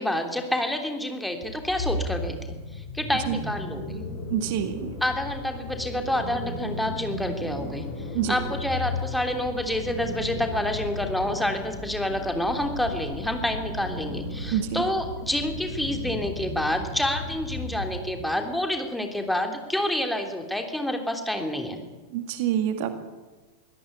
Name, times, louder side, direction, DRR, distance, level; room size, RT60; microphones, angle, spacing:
voice 1, 0.0-4.0 5.0-7.9 8.3-21.8, left 1 dB, ahead, 4 dB, 3.3 m, -28 dB
sound 1, 1.4-18.3, left 1 dB, 55° left, 7.3 m, -35 dB
voice 2, 4.3-4.9 8.1-8.3 14.5-14.8 22.1-22.9, right 10 dB, 50° right, 8 dB, 2.1 m, -26 dB
23.0 x 17.5 x 9.6 m, 1.2 s
figure-of-eight pair, 90°, 0 cm